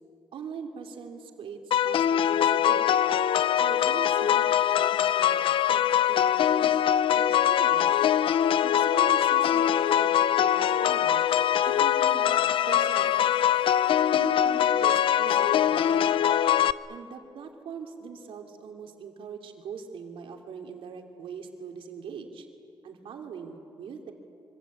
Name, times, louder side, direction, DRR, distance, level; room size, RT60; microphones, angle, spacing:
voice 1, 0.3-3.0 3.5-5.4 5.7-6.8 7.1-8.0 8.6-11.3 11.6-12.3 12.7-13.4 14.1-16.1 16.9-22.5 22.8-24.1, right 6 dB, 70° right, 3 dB, 3.1 m, -41 dB
sound 1, 1.7-16.7, left 10 dB, 65° left, 0.6 m, -23 dB
26.0 x 25.0 x 8.7 m, 2.6 s
wide cardioid pair, 155°, 9 cm